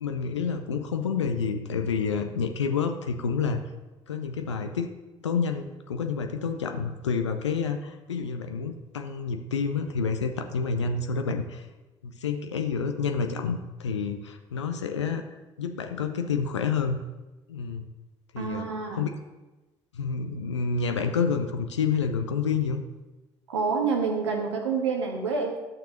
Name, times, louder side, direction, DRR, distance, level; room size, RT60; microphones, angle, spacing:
voice 1, 0.0-3.6 4.1-4.9 5.2-11.6 12.0-15.2 15.6-17.0 17.5-17.8 18.3-19.1 19.9-22.8, left 5 dB, 80° left, 6 dB, 0.6 m, -29 dB
voice 2, 18.4-19.0 23.5-25.6, right 5 dB, 80° right, 2 dB, 1.4 m, -27 dB
12.0 x 6.7 x 3.8 m, 1.1 s
figure-of-eight pair, 50°, 15 cm